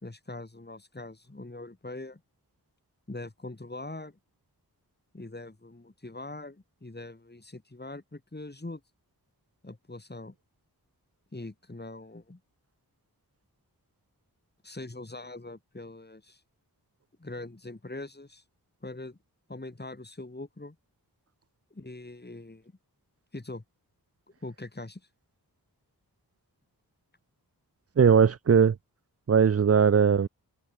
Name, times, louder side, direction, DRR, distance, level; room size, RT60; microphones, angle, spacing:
voice 1, 0.0-2.2 3.1-4.2 5.1-8.8 9.6-10.3 11.3-12.4 14.6-16.4 17.2-18.4 18.8-19.2 19.5-20.8 21.7-22.7 23.3-23.6 24.4-25.1, left 2 dB, 25° left, 3.9 m, -42 dB
voice 2, 28.0-28.8 29.3-30.3, right 6 dB, 40° right, 0.5 m, -19 dB
wide cardioid pair, 70°, 38 cm